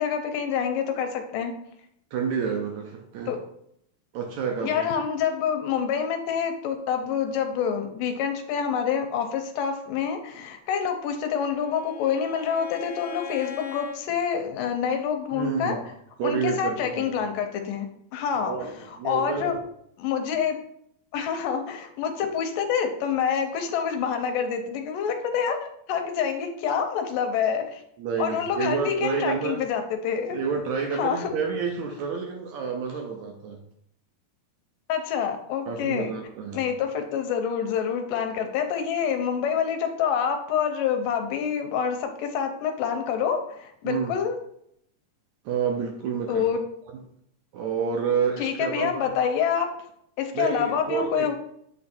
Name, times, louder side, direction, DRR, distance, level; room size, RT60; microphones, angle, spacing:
voice 1, 0.0-1.5 3.3-3.4 4.6-15.8 16.2-17.9 18.1-19.6 20.0-20.6 21.1-27.8 28.2-30.4 30.9-31.3 34.9-36.1 36.5-44.4 46.3-46.6 48.4-49.7 50.2-51.3, left 7 dB, 80° left, 5 dB, 2.2 m, -27 dB
voice 2, 2.1-3.4 4.1-4.9 15.3-15.8 16.2-17.1 18.5-19.5 28.0-29.6 30.3-33.6 35.7-36.6 43.9-44.2 45.5-46.5 47.5-49.1 50.3-51.3, right 6 dB, 75° right, 2 dB, 1.7 m, -29 dB
Bowed string instrument, 10.8-14.0, left 8 dB, 60° left, 1.3 m, -40 dB
8.3 x 3.2 x 4.3 m, 0.72 s
omnidirectional pair, 4.0 m